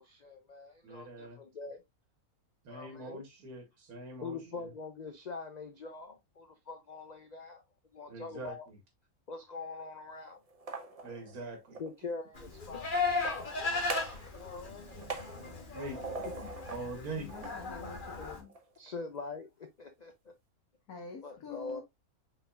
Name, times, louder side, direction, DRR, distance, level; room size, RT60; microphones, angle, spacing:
voice 1, 0.0-1.8 2.7-3.2 4.2-7.6 7.9-8.7 9.3-10.4 11.8-13.6 14.3-15.4 18.8-20.3 21.2-21.8, left 4 dB, 75° left, 0.4 m, -44 dB
voice 2, 0.8-1.4 2.6-4.7 8.1-8.7 11.0-11.8 14.9-15.1 15.7-16.0 16.7-17.3, right 2 dB, 85° right, 1.6 m, -43 dB
sound 1, 10.5-11.9 13.1-14.3 14.6-16.9 17.3-18.6, right 3 dB, 35° right, 0.6 m, -43 dB
Livestock farm animals working animals, 12.3-18.4, left 4 dB, 40° left, 1.1 m, -36 dB
voice 3, 17.2-18.5 20.9-21.8, left 6 dB, 90° left, 1.6 m, -46 dB
5.6 x 3.9 x 2.3 m
omnidirectional pair, 1.5 m